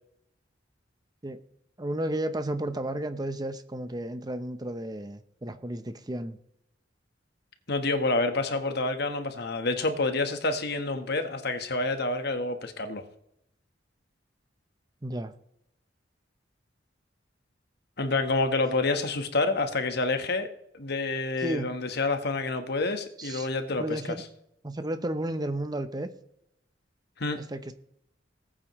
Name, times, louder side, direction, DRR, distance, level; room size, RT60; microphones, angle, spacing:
voice 1, 1.8-6.4 15.0-15.3 21.4-21.8 23.2-24.2 24.6-26.1 27.4-27.7, right 1 dB, 20° right, 10 dB, 0.7 m, -33 dB
voice 2, 7.7-13.0 18.0-20.5 20.7-23.8 27.2-27.4, left 3 dB, 60° left, 7 dB, 1.3 m, -28 dB
19.5 x 8.7 x 3.1 m, 0.76 s
head